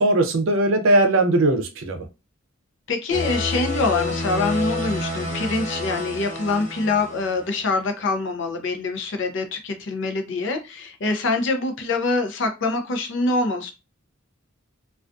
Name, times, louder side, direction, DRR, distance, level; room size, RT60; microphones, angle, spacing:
voice 1, 0.0-2.1, right 2 dB, 75° right, 5 dB, 0.5 m, -19 dB
voice 2, 2.9-13.7, left 3 dB, 60° left, 6 dB, 0.5 m, -25 dB
sound 1, 3.1-7.5, left 2 dB, 35° left, 1.0 m, -29 dB
2.3 x 2.3 x 2.4 m, 0.27 s
head